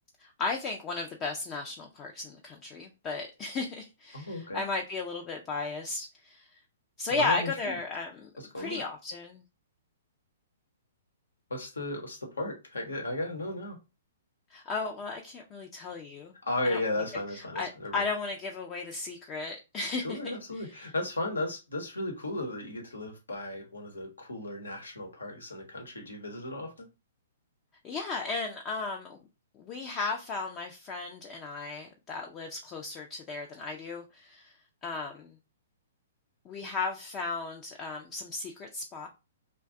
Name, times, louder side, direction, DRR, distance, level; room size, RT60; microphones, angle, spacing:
voice 1, 0.2-6.5 7.0-9.4 14.5-16.3 16.6-16.8 17.3-20.4 27.8-29.2 29.5-34.5 34.8-35.4 36.4-39.1, left 3 dB, 30° left, 0.4 m, -35 dB
voice 2, 4.1-4.6 7.1-7.8 8.4-8.8 11.5-13.8 16.4-18.0 20.0-26.9, left 1 dB, 85° left, 1.0 m, -35 dB
2.5 x 2.2 x 3.6 m
figure-of-eight pair, 120°, 0 cm